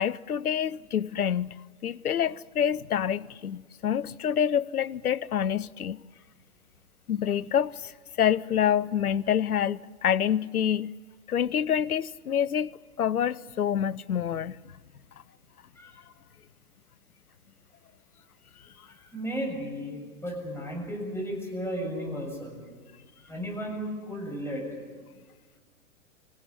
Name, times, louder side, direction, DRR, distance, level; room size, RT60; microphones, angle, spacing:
voice 1, 0.0-6.0 7.1-10.9 11.3-14.6, left 9 dB, 80° left, 0.7 m, -27 dB
voice 2, 18.9-22.6 23.3-24.6, equal, 5° left, 7.1 m, -34 dB
26.0 x 16.5 x 9.8 m
figure-of-eight pair, 110°, 43 cm